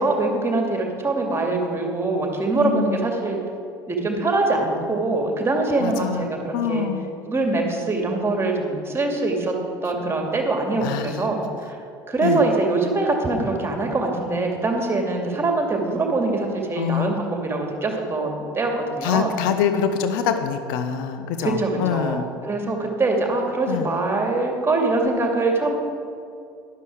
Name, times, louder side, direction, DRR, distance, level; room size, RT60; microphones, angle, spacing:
voice 1, 0.0-3.4 3.9-6.9 7.3-9.5 9.8-11.8 12.1-19.3 21.4-25.7, right 2 dB, 20° right, 2 dB, 2.3 m, -23 dB
voice 2, 2.6-3.0 5.8-7.1 10.8-11.3 12.2-12.4 16.8-17.2 19.0-22.2 23.7-23.9, left 8 dB, 65° left, 8 dB, 0.8 m, -25 dB
12.5 x 10.5 x 4.7 m, 2.4 s
figure-of-eight pair, 65°, 12 cm